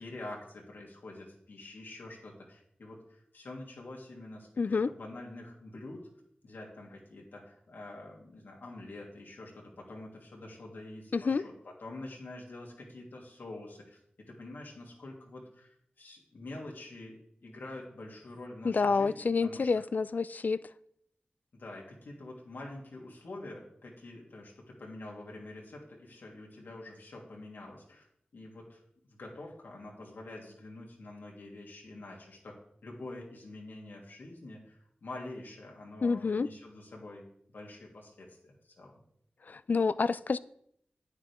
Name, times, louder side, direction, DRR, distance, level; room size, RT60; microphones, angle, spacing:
voice 1, 0.0-6.1 6.4-15.7 16.0-19.8 21.5-28.1 28.3-28.8 29.1-37.2 37.5-38.9, left 2 dB, 90° left, -2 dB, 2.7 m, -46 dB
voice 2, 4.6-4.9 11.1-11.4 18.6-20.6 36.0-36.5 39.5-40.4, left 4 dB, 55° left, 16 dB, 0.4 m, -28 dB
10.0 x 9.6 x 3.6 m, 0.69 s
wide cardioid pair, 95°, 3 cm